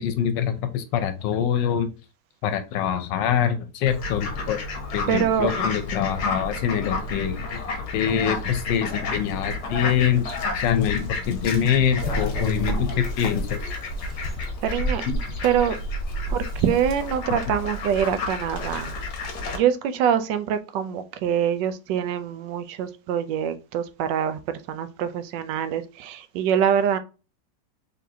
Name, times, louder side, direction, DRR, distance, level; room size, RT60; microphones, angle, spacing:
voice 1, 0.0-1.9 2.4-4.6 4.9-7.6 7.9-13.6 15.1-15.2, left 8 dB, 85° left, 9 dB, 1.3 m, -24 dB
Fowl, 3.9-19.6, left 3 dB, 65° left, 1.5 m, -31 dB
voice 2, 5.1-5.5 14.6-15.0 15.4-15.8 16.3-18.9 19.5-24.4 24.7-27.0, right 8 dB, 80° right, 10 dB, 1.2 m, -24 dB
sound 1, 12.0-17.2, right 1 dB, 45° left, 1.1 m, -31 dB
4.1 x 3.4 x 2.7 m, 0.32 s
omnidirectional pair, 1.9 m